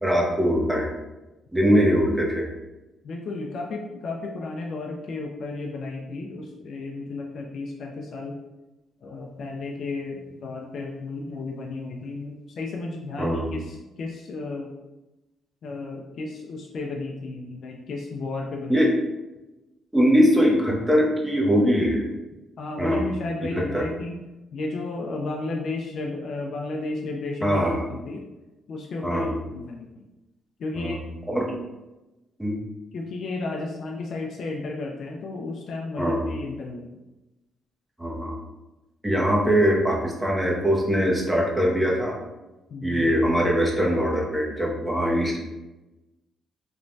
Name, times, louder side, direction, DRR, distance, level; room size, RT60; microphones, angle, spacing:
voice 1, 0.0-0.9 1.5-2.5 13.2-13.5 18.7-18.9 19.9-22.1 22.8-23.0 23.6-23.9 27.4-27.8 29.0-29.3 30.8-30.9 31.3-31.5 32.4-32.6 36.0-36.3 38.0-38.3 39.0-42.2 42.8-45.4, equal, 10° right, -2 dB, 0.6 m, -22 dB
voice 2, 3.0-8.4 9.0-14.7 15.6-18.8 22.6-24.2 24.5-27.6 27.9-28.2 28.7-30.0 30.6-31.0 32.9-36.9 42.7-43.0, left 3 dB, 65° left, 0 dB, 0.3 m, -33 dB
3.1 x 2.1 x 2.6 m, 1.0 s
cardioid pair, 90°, 0 cm